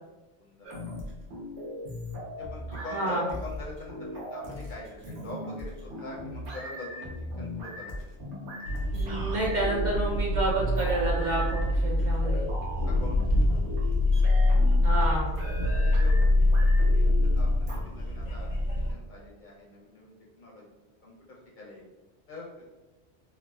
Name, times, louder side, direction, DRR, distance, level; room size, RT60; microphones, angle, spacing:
voice 1, 0.4-1.3 2.1-7.1 7.4-8.1 12.8-13.2 13.5-13.7 15.1-15.4 15.6-20.8 21.0-21.8 22.3-22.6, left 1 dB, 55° left, -3 dB, 0.6 m, -45 dB
sound 1, 0.6-17.8, left 1 dB, 90° right, 1.0 m, -39 dB
voice 2, 2.7-3.3 8.9-12.5 14.8-15.3, right 1 dB, 55° right, -4 dB, 0.6 m, -29 dB
sound 2, 8.7-18.9, left 1 dB, 85° left, 0.9 m, -25 dB
3.2 x 2.3 x 2.3 m, 1.1 s
omnidirectional pair, 1.1 m